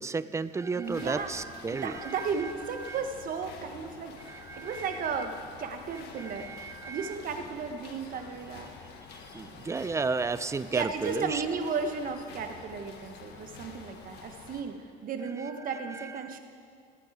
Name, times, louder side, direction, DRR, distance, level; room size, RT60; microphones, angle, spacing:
voice 1, 0.0-2.5 2.8-3.0 4.3-5.0 6.2-7.2 9.1-11.4 15.6-16.4, right 4 dB, 15° right, 14 dB, 0.4 m, -34 dB
voice 2, 0.7-1.3 1.7-8.7 10.7-16.4, right 5 dB, 55° right, 6 dB, 1.2 m, -35 dB
sound 1, 0.8-14.6, left 5 dB, 75° left, 1.6 m, -48 dB
19.5 x 9.1 x 4.9 m, 2.2 s
cardioid pair, 110°, 17 cm